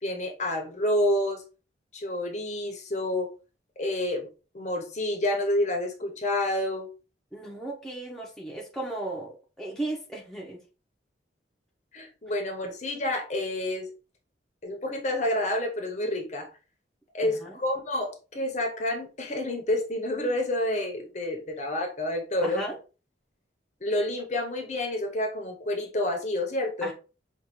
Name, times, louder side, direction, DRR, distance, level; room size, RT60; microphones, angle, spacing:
voice 1, 0.0-1.4 1.9-3.3 3.8-4.3 4.5-6.9 11.9-13.9 14.6-16.5 17.1-22.6 23.8-26.9, left 1 dB, 40° left, 0.8 m, -29 dB
voice 2, 7.3-10.6 17.2-17.6 22.4-22.8 26.8-26.9, right 1 dB, ahead, 0.8 m, -35 dB
5.1 x 2.5 x 3.0 m
head